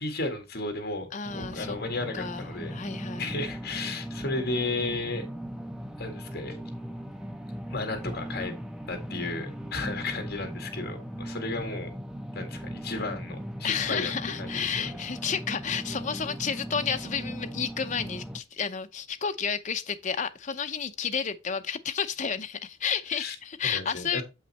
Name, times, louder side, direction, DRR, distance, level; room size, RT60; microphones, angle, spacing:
voice 1, 0.0-2.7 3.2-5.3 6.0-6.6 7.7-8.5 8.9-11.9 12.4-14.1 14.4-14.9 23.1-23.4 23.6-24.2, left 2 dB, 55° left, 2.0 m, -33 dB
voice 2, 1.1-1.8 2.1-3.3 13.6-24.2, left 6 dB, 40° left, 0.7 m, -31 dB
sound 1, 1.2-18.4, equal, 5° right, 0.6 m, -38 dB
7.3 x 5.6 x 4.2 m
head